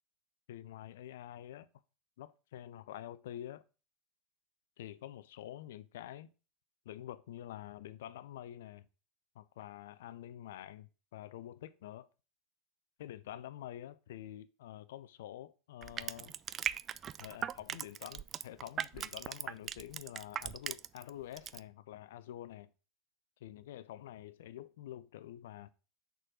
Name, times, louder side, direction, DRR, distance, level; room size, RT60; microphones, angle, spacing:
voice 1, 0.5-1.7 2.2-3.6 4.8-6.3 6.9-8.9 9.3-12.1 13.0-16.3 17.2-22.7 23.4-25.7, left 12 dB, 65° left, 0.5 m, -47 dB
Crushing, 15.8-21.1 21.4-21.6, right 9 dB, 35° right, 0.3 m, -39 dB
6.4 x 3.9 x 6.1 m
figure-of-eight pair, 75°, 0 cm